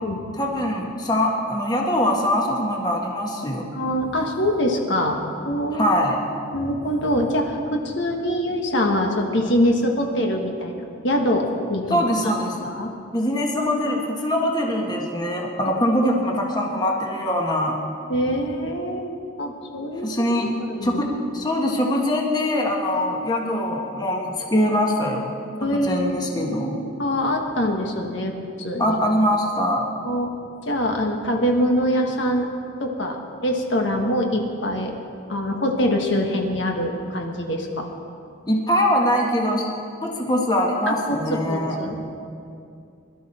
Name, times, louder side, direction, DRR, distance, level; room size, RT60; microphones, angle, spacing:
voice 1, 0.3-3.7 5.7-6.1 11.9-12.7 13.1-17.8 20.0-20.5 20.8-25.3 25.7-26.7 28.8-29.8 38.5-39.7 40.0-41.8, equal, 20° left, -1 dB, 1.4 m, -23 dB
voice 2, 3.7-5.9 6.5-12.1 12.6-12.9 18.1-19.1 19.4-20.1 20.3-21.0 25.6-28.3 28.6-29.0 30.0-30.3 30.7-32.5 32.8-34.9 35.3-37.9 40.9-41.2 41.5-42.0, equal, 60° left, 2 dB, 1.5 m, -24 dB
21.5 x 12.5 x 4.4 m, 2.5 s
head